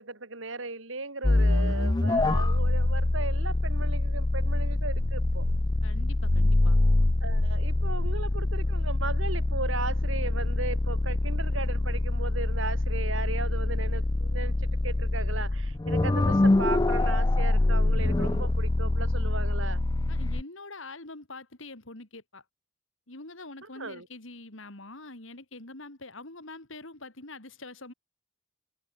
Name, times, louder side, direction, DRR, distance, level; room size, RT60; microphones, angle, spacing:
voice 1, 0.0-5.5 7.2-19.8 23.8-24.1, right 3 dB, 65° right, 3.7 m, -37 dB
sound 1, 1.2-20.4, left 2 dB, 20° left, 0.4 m, -25 dB
voice 2, 5.8-6.8 20.1-22.4 23.1-27.9, left 2 dB, 65° left, 3.4 m, -44 dB
head